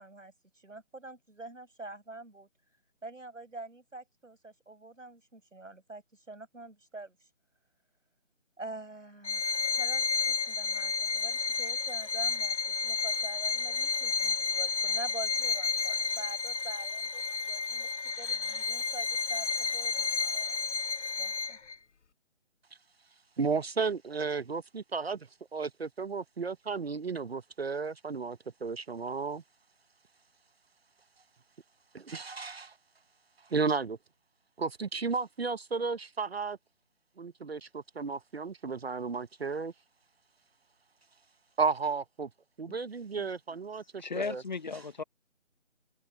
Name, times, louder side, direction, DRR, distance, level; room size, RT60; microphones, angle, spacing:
voice 1, 0.0-2.5 3.0-7.2 8.6-20.6 21.2-21.6, right 2 dB, 90° right, 5.9 m, -46 dB
Bowed string instrument, 9.2-21.7, left 5 dB, 70° left, 0.8 m, -31 dB
voice 2, 23.4-29.4 31.9-32.8 33.4-34.0 34.6-36.6 37.2-39.7 41.6-42.3 42.6-44.4, right 4 dB, 55° right, 0.9 m, -33 dB
voice 3, 44.0-45.0, left 4 dB, 40° left, 0.9 m, -36 dB
open air
figure-of-eight pair, 160°, 37 cm